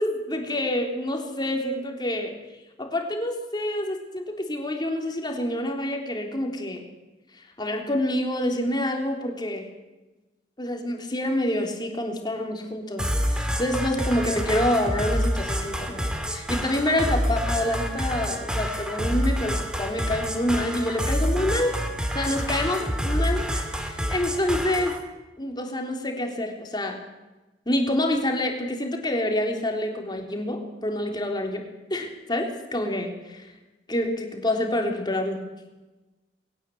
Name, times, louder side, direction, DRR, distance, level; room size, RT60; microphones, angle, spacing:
voice 1, 0.0-2.4 2.8-6.8 7.3-9.7 10.6-21.7 22.1-25.0 25.4-27.0 27.7-31.6 31.9-33.5 33.9-35.4, left 1 dB, 25° left, 3 dB, 3.6 m, -27 dB
sound 1, 13.0-25.0, equal, 5° right, 2.5 m, -27 dB
21.5 x 18.0 x 7.8 m, 1.1 s
head